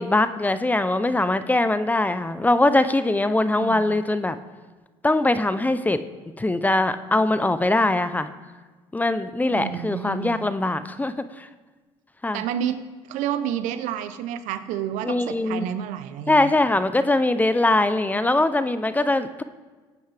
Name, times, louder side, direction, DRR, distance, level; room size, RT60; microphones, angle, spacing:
voice 1, 0.0-4.4 5.0-6.0 6.4-8.3 8.9-11.5 12.2-12.4 15.0-15.7 16.3-19.4, left 2 dB, 10° left, 12 dB, 0.6 m, -22 dB
voice 2, 3.5-3.9 9.5-10.4 12.3-16.6, right 10 dB, 75° right, 12 dB, 0.8 m, -30 dB
17.0 x 9.2 x 3.4 m, 1.3 s
supercardioid pair, 75°, 13 cm